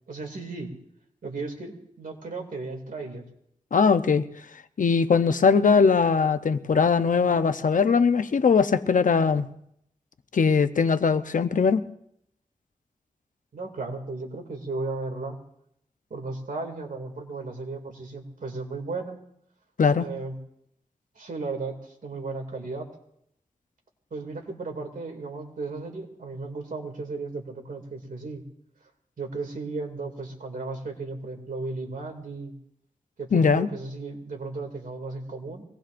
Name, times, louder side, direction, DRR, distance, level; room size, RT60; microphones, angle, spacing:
voice 1, 0.1-0.7 1.2-3.3 13.5-15.4 16.1-19.2 20.0-20.4 21.2-22.9 24.1-28.4 29.2-32.5 33.2-35.6, right 3 dB, 90° right, 3 dB, 2.5 m, -35 dB
voice 2, 3.7-4.2 4.8-9.5 10.3-11.8 19.8-20.1 33.3-33.7, left 5 dB, 75° left, 10 dB, 0.7 m, -20 dB
23.5 x 19.0 x 2.6 m, 0.73 s
wide cardioid pair, 90°, 14 cm